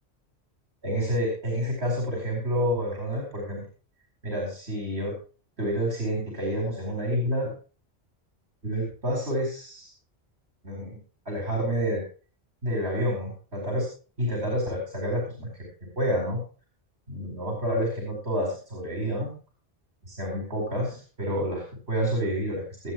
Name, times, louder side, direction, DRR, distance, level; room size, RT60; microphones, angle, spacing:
voice 1, 0.8-3.6 4.2-5.1 5.6-7.5 8.6-9.9 10.6-11.0 11.2-12.0 12.6-13.9 14.2-15.6 16.0-16.4 17.1-19.3 20.0-22.9, equal, 75° right, -1 dB, 5.1 m, -29 dB
25.0 x 9.0 x 3.1 m, 0.37 s
omnidirectional pair, 1.1 m